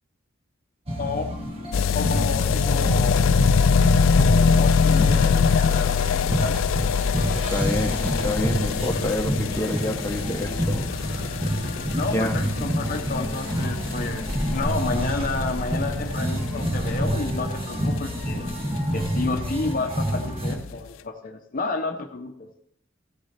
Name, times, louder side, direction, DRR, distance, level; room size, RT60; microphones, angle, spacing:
sound 1, 0.9-20.6, equal, 30° right, 1.7 m, -28 dB
voice 1, 1.0-1.3 1.9-3.2 4.0-6.6 11.9-18.5 18.9-22.5, left 3 dB, 45° left, 5 dB, 0.9 m, -31 dB
sound 2, 1.7-18.5 18.8-18.9 19.1-19.2 19.4-19.5 19.7-19.8 20.5-20.6, left 6 dB, 75° left, 0.4 m, -23 dB
voice 2, 7.3-10.9 12.1-12.5, left 1 dB, 15° left, 1 dB, 1.1 m, -28 dB
15.0 x 6.3 x 4.3 m, 0.70 s
head